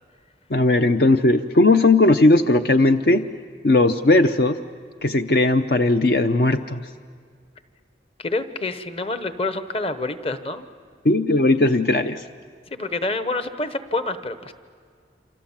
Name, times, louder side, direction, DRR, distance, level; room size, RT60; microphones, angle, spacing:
voice 1, 0.5-3.3 3.6-4.6 5.0-6.8 11.0-12.2, left 2 dB, 60° left, 8 dB, 0.6 m, -17 dB
voice 2, 8.2-10.6 12.7-14.5, left 2 dB, 35° left, 10 dB, 1.1 m, -27 dB
27.5 x 27.0 x 7.3 m, 2.1 s
head